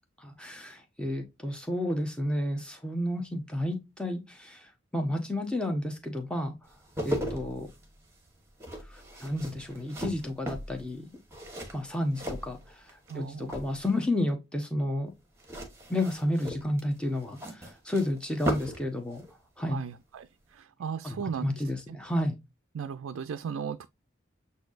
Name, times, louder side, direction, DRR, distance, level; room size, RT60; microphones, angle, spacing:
voice 1, 0.2-6.5 7.0-7.7 8.8-11.2 11.7-15.1 15.9-19.2 19.6-19.8 21.0-22.4, left 1 dB, 5° left, 0.9 m, -31 dB
sound 1, 6.7-13.2 13.4-14.1 15.4-18.9 19.1-19.3, right 1 dB, 15° right, 1.2 m, -37 dB
voice 2, 13.1-13.5 19.7-20.3 20.5-21.5 22.7-23.9, right 7 dB, 90° right, 0.4 m, -36 dB
7.9 x 2.7 x 2.5 m
head